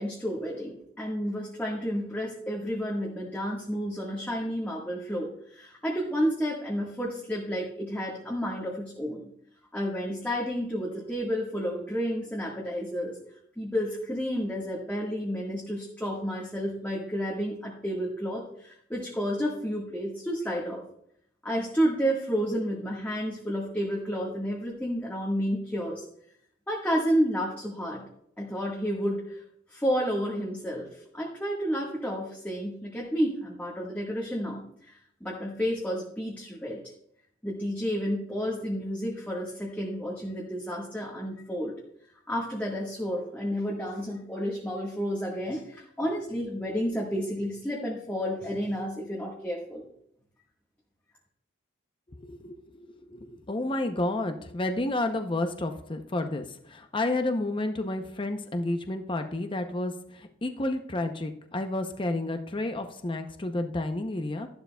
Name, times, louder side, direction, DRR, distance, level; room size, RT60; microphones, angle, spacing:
voice 1, 0.0-9.2 9.7-13.2 13.6-20.8 21.4-26.0 26.7-28.0 28.4-29.4 29.7-36.8 37.4-41.7 42.3-49.8, equal, 10° left, -4 dB, 1.5 m, -31 dB
voice 2, 52.2-52.6 53.0-64.5, left 2 dB, 25° left, 6 dB, 0.7 m, -31 dB
12.5 x 11.5 x 2.3 m, 0.70 s
head